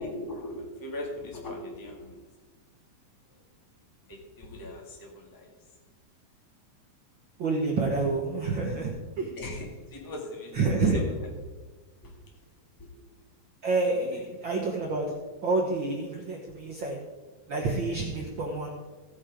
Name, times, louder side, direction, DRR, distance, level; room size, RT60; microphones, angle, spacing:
voice 1, 0.0-2.2 4.1-5.5 9.4-11.5 12.0-12.1 12.8-12.9 14.0-14.2 17.9-18.0, left 1 dB, 10° left, -1 dB, 0.9 m, -39 dB
voice 2, 7.4-8.9 9.2-9.3 10.5-11.0 13.6-15.0 15.4-17.0 17.5-18.7, right 3 dB, 85° right, -2 dB, 1.0 m, -28 dB
16.0 x 6.3 x 5.0 m, 1.2 s
omnidirectional pair, 4.2 m